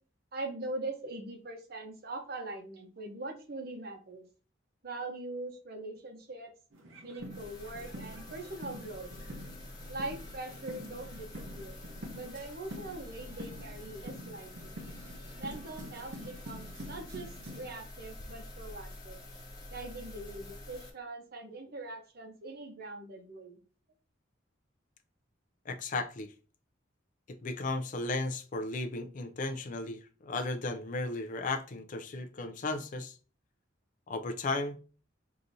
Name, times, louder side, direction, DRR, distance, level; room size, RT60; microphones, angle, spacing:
voice 1, 0.3-4.3 4.8-6.5 7.0-9.1 9.9-11.8 12.1-14.8 15.4-17.3 17.5-19.2 19.7-23.6, right 2 dB, 50° right, 0.8 m, -42 dB
sound 1, 6.7-17.7, equal, 85° right, 0.8 m, -47 dB
sound 2, 7.2-20.9, left 1 dB, 20° left, 0.9 m, -47 dB
voice 2, 25.7-26.3 27.3-33.1 34.1-34.8, left 3 dB, 40° left, 0.4 m, -35 dB
4.8 x 2.8 x 2.6 m
head